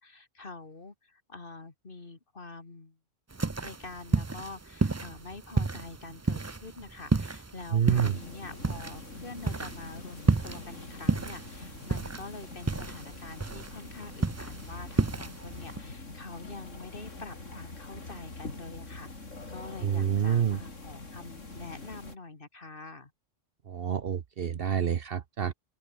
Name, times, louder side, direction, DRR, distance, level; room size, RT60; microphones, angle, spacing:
voice 1, 0.0-3.0 3.6-19.1 19.5-23.1, left 3 dB, 45° left, 2.5 m, -46 dB
sound 1, 3.3-15.8, right 3 dB, 25° right, 0.4 m, -32 dB
voice 2, 7.7-8.2 19.8-20.6 23.7-25.5, right 8 dB, 55° right, 1.0 m, -27 dB
sound 2, 8.0-22.2, left 3 dB, 90° left, 4.2 m, -44 dB
open air
omnidirectional pair, 1.2 m